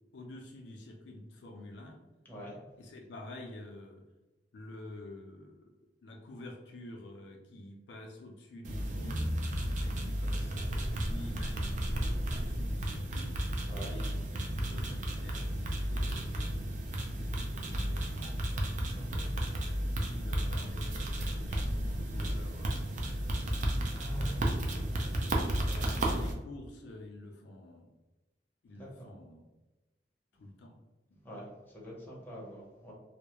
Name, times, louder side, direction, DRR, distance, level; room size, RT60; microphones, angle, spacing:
voice 1, 0.1-2.0 2.8-4.0 4.5-5.7 6.0-9.4 9.8-13.4 13.8-18.4 19.3-23.5 24.4-25.0 25.7-27.9 28.6-29.5 30.4-30.8 31.1-31.2, left 1 dB, 70° left, 2 dB, 0.3 m, -49 dB
voice 2, 2.2-2.5 13.7-14.0 18.9-19.2 23.9-24.5 25.7-25.9 28.7-29.1 31.2-32.9, equal, 10° left, -4 dB, 0.7 m, -45 dB
sound 1, 8.6-26.3, right 1 dB, 45° right, 0.4 m, -33 dB
2.2 x 2.0 x 2.8 m, 1.1 s
head